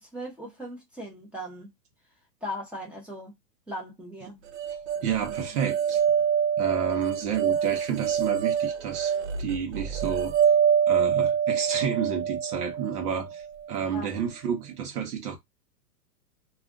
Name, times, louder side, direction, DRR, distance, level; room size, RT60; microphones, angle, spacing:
voice 1, 0.0-1.7 2.4-3.4 3.7-4.4 13.9-14.1, equal, ahead, 0.8 m, -38 dB
sound 1, 4.5-13.7, right 8 dB, 45° right, 0.5 m, -26 dB
voice 2, 5.0-6.0 6.6-10.4 10.9-15.4, right 7 dB, 65° right, 1.0 m, -30 dB
2.4 x 2.4 x 3.7 m
hypercardioid pair, 145°, 50 cm